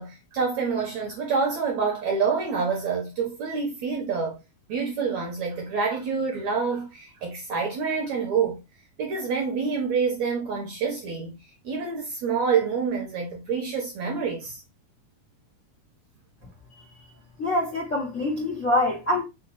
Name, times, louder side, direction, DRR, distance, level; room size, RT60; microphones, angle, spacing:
voice 1, 0.0-4.4 4.7-8.6 9.0-11.4 11.6-14.6, right 5 dB, 65° right, 1.9 m, -27 dB
voice 2, 17.4-19.2, left 1 dB, 60° left, 0.8 m, -25 dB
5.7 x 2.3 x 4.0 m
omnidirectional pair, 4.3 m